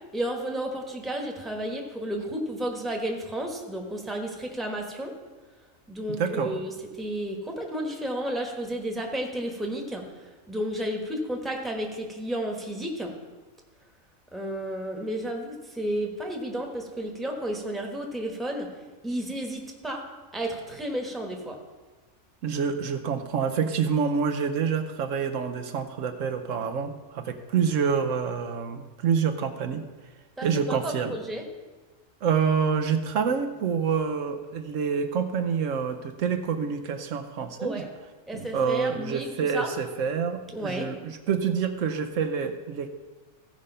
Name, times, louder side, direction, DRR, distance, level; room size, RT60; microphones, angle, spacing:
voice 1, 0.1-5.1 5.9-10.0 10.5-13.1 14.3-18.7 19.0-20.0 20.3-21.6 30.4-31.5 37.6-37.9 38.3-39.7 40.5-40.9, right 1 dB, ahead, 2 dB, 1.1 m, -32 dB
voice 2, 6.1-6.6 22.4-29.8 30.4-31.1 32.2-37.9 38.3-42.9, right 6 dB, 75° right, 6 dB, 1.1 m, -27 dB
15.0 x 5.1 x 5.5 m, 1.3 s
omnidirectional pair, 1.4 m